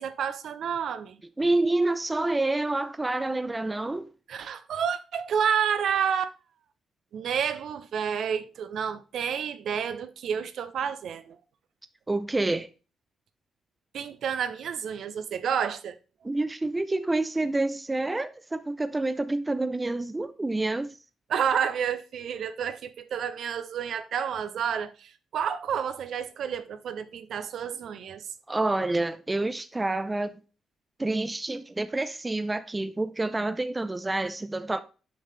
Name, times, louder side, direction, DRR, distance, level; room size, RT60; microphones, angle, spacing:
voice 1, 0.0-1.2 4.3-6.3 7.1-11.4 13.9-15.9 21.3-28.2, right 7 dB, 60° right, 0.6 m, -30 dB
voice 2, 1.4-4.1 12.1-12.7 16.2-21.0 28.5-30.3 31.0-34.8, right 2 dB, 15° right, 0.4 m, -28 dB
7.0 x 5.6 x 3.2 m
cardioid pair, 150°, 0 cm